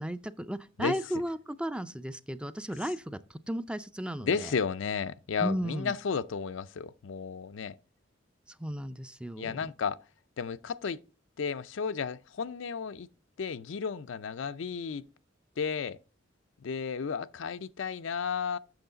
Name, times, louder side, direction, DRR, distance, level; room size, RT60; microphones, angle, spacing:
voice 1, 0.0-4.5 5.4-5.9 8.6-9.6, equal, 5° right, 0.4 m, -35 dB
voice 2, 4.2-7.7 9.4-10.0 10.4-11.0 11.4-13.1 13.4-15.0 15.6-16.0 16.6-18.6, left 5 dB, 75° left, 0.4 m, -33 dB
7.9 x 6.4 x 3.9 m
head